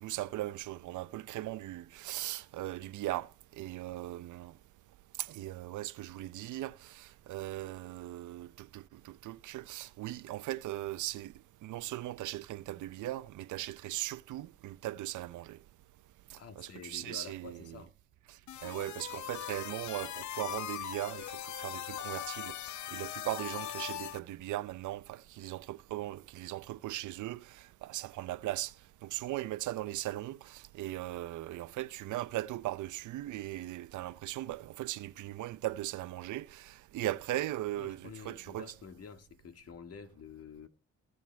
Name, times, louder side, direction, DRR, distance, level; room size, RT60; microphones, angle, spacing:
voice 1, 0.0-3.3 3.6-4.5 5.2-11.3 11.6-15.6 16.3-17.6 18.6-28.7 29.0-38.7, right 15 dB, 80° right, 0.7 m, -39 dB
voice 2, 16.4-17.9 37.7-40.7, left 6 dB, 50° left, 2.0 m, -49 dB
sound 1, 18.5-24.2, left 13 dB, 75° left, 0.8 m, -40 dB
19.0 x 8.1 x 3.5 m
cardioid pair, 90°, 30 cm